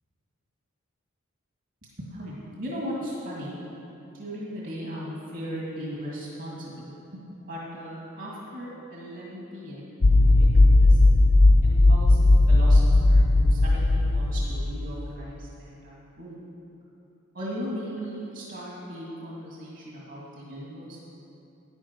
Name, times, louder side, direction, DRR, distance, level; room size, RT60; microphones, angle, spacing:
voice 1, 2.0-3.5 4.1-9.9 10.2-11.0 11.6-16.4 17.3-21.0, equal, 60° right, -5 dB, 2.0 m, -37 dB
sound 1, 10.0-14.8, left 2 dB, 45° left, 0.5 m, -17 dB
11.0 x 9.7 x 4.4 m, 2.9 s
head